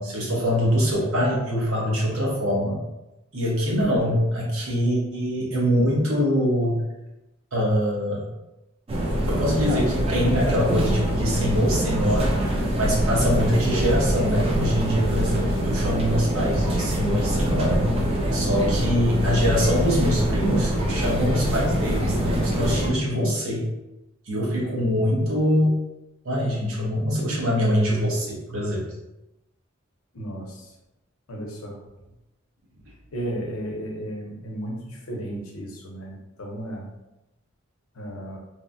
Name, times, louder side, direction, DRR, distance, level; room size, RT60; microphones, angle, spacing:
voice 1, 0.0-2.8 3.3-6.8 7.5-8.3 9.3-17.9 18.3-23.7 24.3-25.8 26.2-28.8, equal, 75° right, -4 dB, 0.9 m, -24 dB
voice 2, 3.7-4.3 18.4-18.9 24.7-25.2 30.1-30.7 31.3-31.8 33.1-36.9 37.9-38.4, right 1 dB, 85° left, 0 dB, 0.6 m, -34 dB
sound 1, 8.9-22.9, right 1 dB, 30° right, 0.4 m, -24 dB
3.0 x 2.1 x 2.5 m, 0.95 s
head